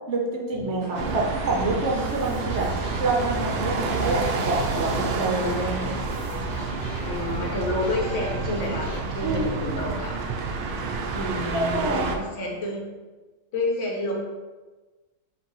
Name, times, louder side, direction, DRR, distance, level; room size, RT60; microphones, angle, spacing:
voice 1, 0.1-2.7 3.0-6.0 9.2-9.9 11.5-12.3, right 2 dB, 55° right, -1 dB, 1.1 m, -27 dB
sound 1, 0.5-9.0, left 1 dB, 40° left, 1.1 m, -39 dB
sound 2, 0.9-12.2, right 4 dB, 80° right, 0.5 m, -29 dB
voice 2, 7.0-10.2 11.1-12.8 13.5-14.1, left 1 dB, 60° left, -1 dB, 1.1 m, -29 dB
5.8 x 2.6 x 3.0 m, 1.2 s
omnidirectional pair, 1.5 m